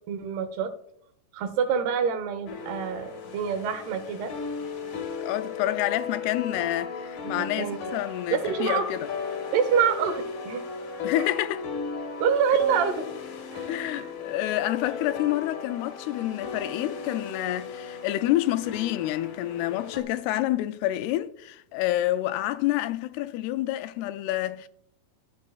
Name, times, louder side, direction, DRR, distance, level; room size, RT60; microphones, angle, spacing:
voice 1, 0.1-0.7 1.3-4.3 7.2-7.8 8.3-8.9 9.5-10.7 11.2-11.3 12.2-13.0 13.5-14.1, right 7 dB, 80° right, 3.0 m, -26 dB
sound 1, 2.5-20.0, left 5 dB, 60° left, 2.4 m, -36 dB
voice 2, 5.2-9.1 11.0-11.7 13.7-24.7, left 14 dB, 85° left, 2.5 m, -28 dB
13.0 x 9.5 x 2.3 m
omnidirectional pair, 4.6 m